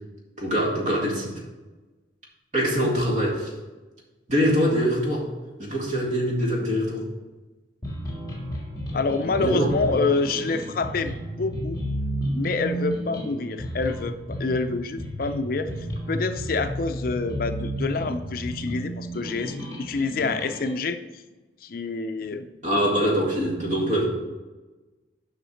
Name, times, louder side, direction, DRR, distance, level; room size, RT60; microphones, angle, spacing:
voice 1, 0.4-1.3 2.5-3.5 4.3-5.3 5.6-7.1 9.4-9.9 22.6-24.1, equal, 40° right, -2 dB, 1.9 m, -23 dB
sound 1, 7.8-20.8, equal, 20° left, 1.6 m, -32 dB
voice 2, 8.9-11.8 12.3-14.1 14.4-21.2 21.6-22.5, left 3 dB, 50° left, 8 dB, 0.4 m, -27 dB
7.1 x 5.6 x 5.1 m, 1.2 s
head